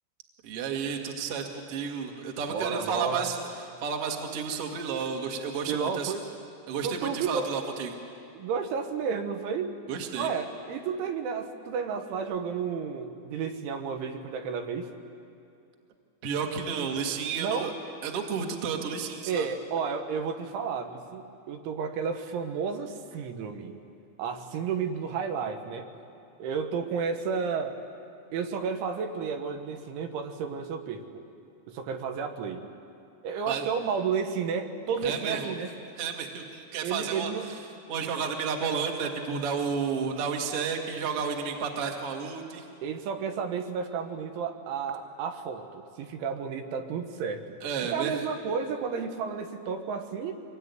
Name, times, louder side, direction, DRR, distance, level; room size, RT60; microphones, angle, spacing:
voice 1, 0.4-6.2 6.7-8.0 9.9-10.3 16.2-17.7 18.0-19.5 33.5-33.7 35.0-35.5 36.0-37.6 37.9-42.7 47.6-48.2, right 6 dB, 45° right, 3 dB, 2.0 m, -32 dB
voice 2, 2.5-3.3 5.7-6.2 6.8-7.6 8.4-9.8 10.2-14.9 17.4-17.7 19.3-23.8 24.2-25.9 26.4-27.8 28.3-31.0 31.7-32.6 33.2-35.7 36.8-37.4 42.8-47.4 47.9-50.3, right 6 dB, 80° right, 5 dB, 3.8 m, -32 dB
25.0 x 21.0 x 9.6 m, 2.5 s
omnidirectional pair, 5.5 m